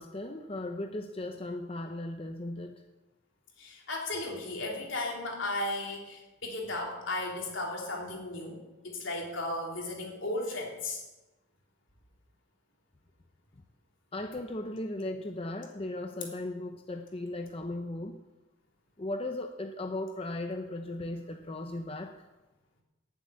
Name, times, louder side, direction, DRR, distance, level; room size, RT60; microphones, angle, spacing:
voice 1, 0.0-2.8 14.1-18.2 19.0-22.2, left 1 dB, 30° left, 5 dB, 0.7 m, -37 dB
voice 2, 3.6-11.0, left 2 dB, 70° left, -1 dB, 3.5 m, -35 dB
11.5 x 7.6 x 9.5 m, 1.0 s
head